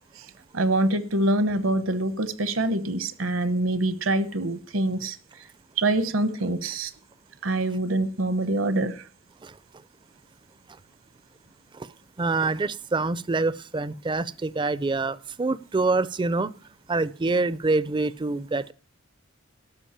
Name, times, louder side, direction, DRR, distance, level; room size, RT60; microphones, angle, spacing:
voice 1, 0.5-5.2 5.8-6.9 7.4-9.0, right 2 dB, 70° right, 1.0 m, -25 dB
voice 2, 12.2-16.5 16.9-18.7, right 3 dB, 25° right, 0.4 m, -26 dB
12.5 x 5.1 x 8.7 m
head